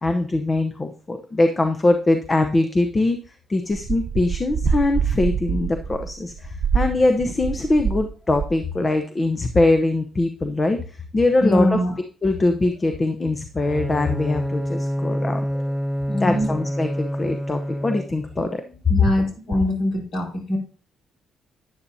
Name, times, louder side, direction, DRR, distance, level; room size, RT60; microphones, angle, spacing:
voice 1, 0.0-3.2 3.5-10.8 11.1-11.8 12.2-15.6 16.2-18.6, left 2 dB, 30° left, 6 dB, 0.8 m, -22 dB
sound 1, 3.7-8.1 8.3-8.7, right 6 dB, 50° right, 0.7 m, -25 dB
voice 2, 11.4-11.9 16.1-16.5 18.9-20.6, left 1 dB, 60° left, 0 dB, 4.6 m, -22 dB
Bowed string instrument, 13.6-18.4, equal, ahead, 0.4 m, -27 dB
9.8 x 9.7 x 2.7 m, 0.40 s
cardioid pair, 90°, 0 cm